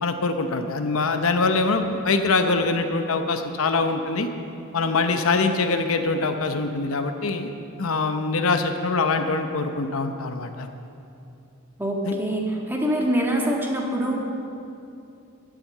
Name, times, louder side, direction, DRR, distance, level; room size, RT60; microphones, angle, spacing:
voice 1, 0.0-4.3 4.7-7.5 7.8-10.7 12.0-12.2, left 3 dB, 80° left, 6 dB, 0.8 m, -23 dB
voice 2, 11.8-14.2, right 1 dB, 10° right, -1 dB, 1.6 m, -24 dB
14.5 x 7.7 x 7.8 m, 2.7 s
head